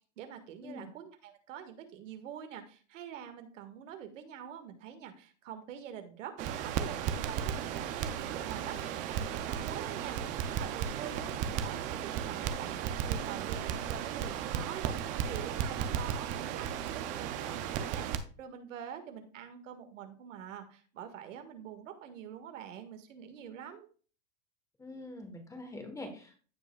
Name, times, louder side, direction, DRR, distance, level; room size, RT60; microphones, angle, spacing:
voice 1, 0.2-23.9, right 9 dB, 80° right, 6 dB, 1.7 m, -45 dB
Crackle, 6.4-18.2, right 9 dB, 20° right, 0.3 m, -35 dB
voice 2, 24.8-26.4, left 2 dB, 10° left, 5 dB, 1.2 m, -44 dB
15.5 x 5.1 x 2.3 m, 0.40 s
supercardioid pair, 145°, 37 cm